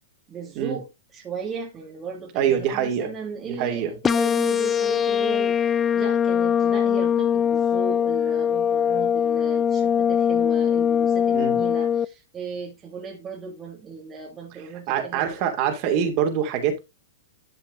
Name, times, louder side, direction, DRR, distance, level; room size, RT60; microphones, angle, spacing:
voice 1, 0.3-0.9 1.1-5.7 6.0-15.5, right 5 dB, 25° right, 2.1 m, -36 dB
voice 2, 2.3-3.1 3.5-4.0 11.3-11.6 14.9-16.8, right 8 dB, 45° right, 2.7 m, -24 dB
sound 1, 4.0-12.1, left 8 dB, 20° left, 0.3 m, -22 dB
12.0 x 5.7 x 2.6 m
hypercardioid pair, 110°, 0 cm